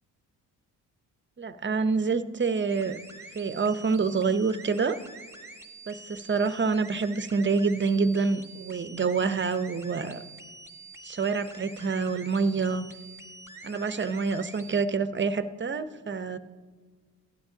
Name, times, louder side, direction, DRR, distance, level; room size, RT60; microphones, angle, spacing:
voice 1, 1.4-3.0 3.3-5.0 5.9-10.2 11.0-12.9 13.6-16.4, right 4 dB, 30° right, 12 dB, 0.8 m, -27 dB
sound 1, 2.7-14.8, right 2 dB, 5° right, 1.6 m, -47 dB
15.5 x 12.0 x 2.8 m, 1.5 s
supercardioid pair, 50°, 40 cm